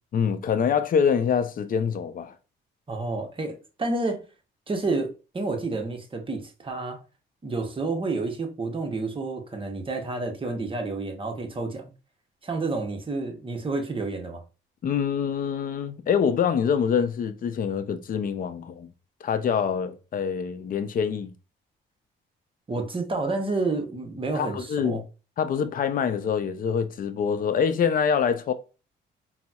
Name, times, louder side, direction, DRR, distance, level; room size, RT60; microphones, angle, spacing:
voice 1, 0.1-2.3 14.8-18.9 19.2-21.3 24.3-25.0 25.4-28.5, left 7 dB, 45° left, 0.4 m, -25 dB
voice 2, 2.9-4.2 4.7-7.0 7.4-11.9 12.4-14.4 22.7-25.0, right 3 dB, 25° right, 0.7 m, -30 dB
4.0 x 2.0 x 2.3 m
cardioid pair, 90°, 20 cm